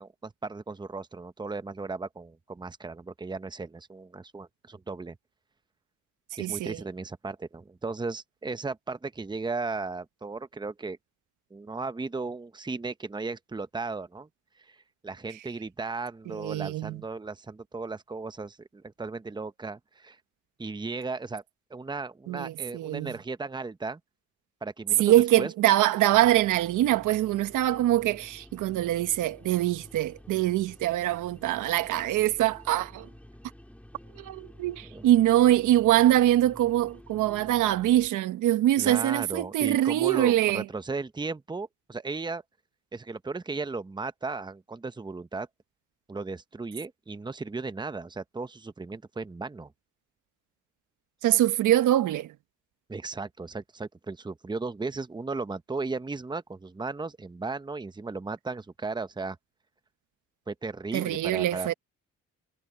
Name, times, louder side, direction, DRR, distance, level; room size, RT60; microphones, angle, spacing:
voice 1, 0.0-5.2 6.4-11.0 11.5-14.3 14.6-14.8 15.0-20.2 20.6-21.4 21.7-24.0 24.6-25.5 34.8-35.0 38.8-42.4 42.9-45.5 46.1-49.7 52.9-59.4 60.5-61.7, right 3 dB, 15° right, 0.9 m, -36 dB
voice 2, 6.4-6.8 16.3-17.0 22.3-23.1 25.0-33.1 34.2-40.6 51.2-52.3 60.9-61.7, right 14 dB, 85° right, 1.3 m, -24 dB
sound 1, 26.1-38.1, left 1 dB, 5° left, 3.4 m, -50 dB
cardioid pair, 90°, 30 cm